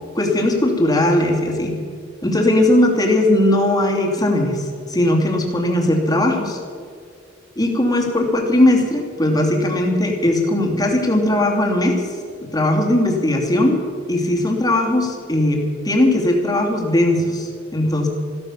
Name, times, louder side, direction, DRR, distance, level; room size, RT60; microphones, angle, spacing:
voice 1, 0.1-1.8 2.2-6.6 7.6-12.1 12.4-13.8 14.1-18.1, left 1 dB, 20° left, 0 dB, 2.8 m, -18 dB
15.0 x 13.5 x 7.1 m, 2.2 s
head